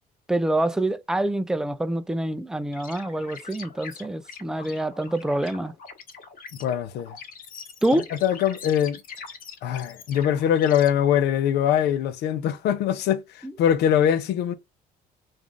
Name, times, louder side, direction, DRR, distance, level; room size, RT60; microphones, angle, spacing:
voice 1, 0.3-5.7 7.8-8.1 13.4-13.5, right 1 dB, 5° right, 0.3 m, -26 dB
sound 1, 2.7-10.9, left 5 dB, 55° left, 1.3 m, -43 dB
voice 2, 6.6-7.1 8.2-9.0 9.6-14.5, left 9 dB, 80° left, 0.7 m, -22 dB
3.6 x 2.5 x 3.5 m
cardioid pair, 110°, 17 cm